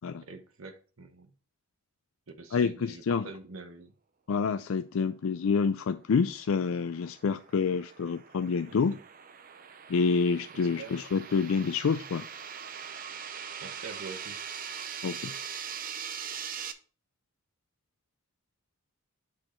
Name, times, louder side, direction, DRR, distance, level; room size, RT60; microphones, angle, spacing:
voice 1, 0.2-1.3 2.4-3.9 8.7-9.0 10.5-10.9 13.6-14.4, right 4 dB, 70° right, 1.0 m, -45 dB
voice 2, 2.5-3.3 4.3-9.0 9.9-12.3 15.0-15.3, left 5 dB, 70° left, 0.4 m, -28 dB
sound 1, 6.3-16.7, right 7 dB, 40° right, 0.6 m, -42 dB
7.6 x 4.6 x 4.3 m
head